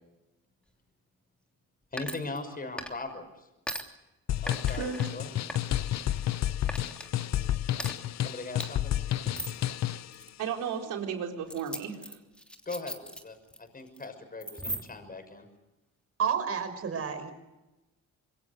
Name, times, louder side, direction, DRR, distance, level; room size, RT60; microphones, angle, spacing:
voice 1, 1.9-3.5 4.4-5.4 8.2-9.0 12.7-15.5, left 3 dB, 30° left, 8 dB, 6.1 m, -40 dB
sound 1, 2.0-3.2 3.7-3.8 4.5-5.1 5.5-6.4 6.7-7.1 7.8-7.9 8.6-8.7 9.3-9.6 10.1-10.3 11.5-13.6 13.9-14.1 14.4-15.1, equal, 5° left, 3.1 m, -39 dB
sound 2, 4.3-10.1, left 12 dB, 60° left, 0.8 m, -30 dB
voice 2, 10.4-12.2, right 7 dB, 90° right, 3 dB, 4.4 m, -34 dB
voice 3, 16.2-17.3, right 7 dB, 50° right, 10 dB, 5.3 m, -30 dB
26.0 x 22.0 x 6.7 m, 1.0 s
cardioid pair, 90°, 30 cm